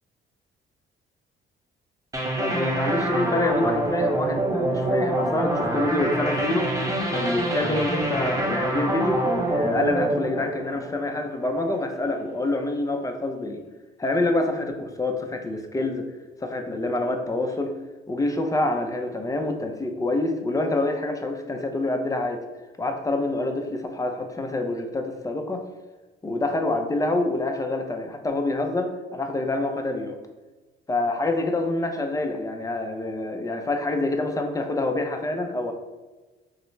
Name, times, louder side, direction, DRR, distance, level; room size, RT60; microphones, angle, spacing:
sound 1, 2.1-11.5, right 1 dB, 15° right, 0.8 m, -26 dB
voice 1, 2.4-6.7 7.1-13.6 14.0-16.1 16.4-17.8 18.1-22.4 22.8-25.6 26.2-30.2 30.9-35.7, left 2 dB, 15° left, 4 dB, 0.6 m, -26 dB
5.8 x 2.1 x 3.2 m, 1.2 s
cardioid pair, 90°, 20 cm